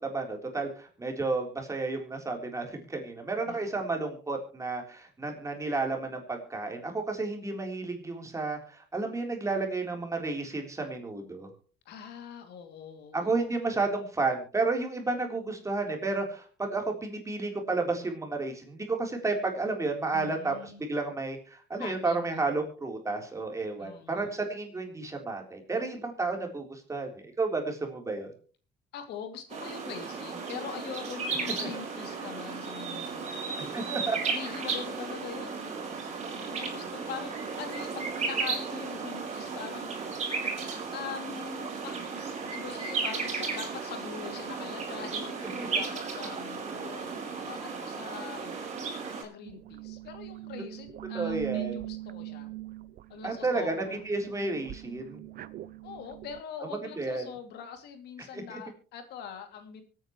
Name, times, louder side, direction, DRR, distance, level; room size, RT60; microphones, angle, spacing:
voice 1, 0.0-11.5 13.1-28.3 31.4-31.7 33.7-34.2 45.6-45.7 51.1-51.8 53.2-55.2 56.8-57.3 58.2-58.6, right 3 dB, 20° right, 2 dB, 3.7 m, -32 dB
voice 2, 3.4-3.8 11.8-13.4 20.1-20.8 21.8-22.4 23.8-24.3 28.9-33.3 34.3-35.7 36.3-40.0 40.9-42.2 42.5-48.7 49.2-52.5 53.1-54.0 55.8-59.8, left 7 dB, 75° left, 6 dB, 2.7 m, -43 dB
sound 1, 29.5-49.2, right 5 dB, 40° right, 4.7 m, -35 dB
sound 2, 49.4-56.4, right 17 dB, 60° right, 0.7 m, -41 dB
24.5 x 9.1 x 3.1 m, 0.38 s
cardioid pair, 110°, 17 cm